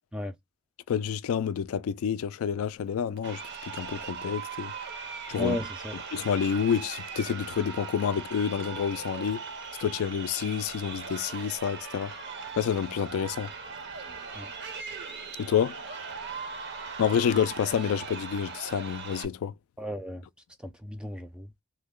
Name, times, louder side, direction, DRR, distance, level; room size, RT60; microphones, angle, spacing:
voice 1, 0.9-4.7 5.3-5.6 6.1-9.4 9.8-12.1 12.6-13.5 15.4-15.8 17.0-19.5, left 7 dB, 80° left, 0.3 m, -28 dB
Crowd, 3.2-19.2, right 5 dB, 50° right, 0.6 m, -39 dB
voice 2, 5.4-6.0 14.3-14.5 19.8-20.3 20.6-21.5, left 1 dB, 5° right, 0.3 m, -34 dB
3.2 x 2.0 x 3.6 m
head